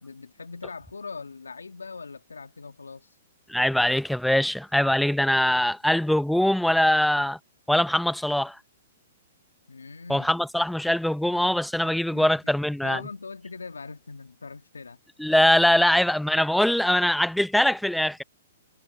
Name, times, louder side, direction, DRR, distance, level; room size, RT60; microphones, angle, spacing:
voice 1, 0.0-3.2 9.7-10.3 11.8-12.5 12.8-15.0 15.8-15.9, left 4 dB, 90° left, 1.7 m, -41 dB
voice 2, 3.5-7.4 7.7-8.6 10.1-13.0 15.2-18.2, left 1 dB, ahead, 0.8 m, -22 dB
hypercardioid pair, 120°, 0 cm